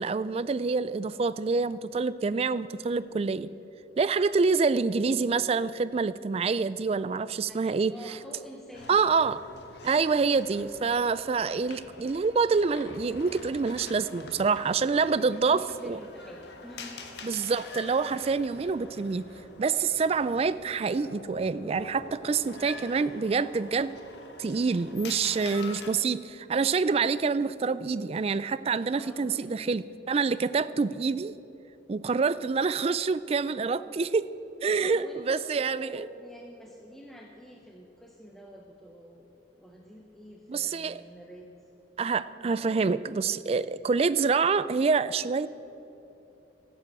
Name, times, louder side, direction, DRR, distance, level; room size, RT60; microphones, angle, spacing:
voice 1, 0.0-3.5 4.0-8.2 8.9-9.4 9.8-16.0 17.2-19.2 19.6-23.9 24.4-31.3 31.9-34.3 34.6-36.1 40.5-41.0 42.0-45.5, right 4 dB, 35° right, 16 dB, 0.3 m, -27 dB
voice 2, 7.4-9.0 11.2-11.5 14.9-17.1 28.9-29.8 34.8-41.5, equal, ahead, 0 dB, 0.8 m, -48 dB
sound 1, 8.7-25.9, left 3 dB, 65° left, 1.4 m, -46 dB
13.5 x 8.3 x 7.9 m, 2.9 s
head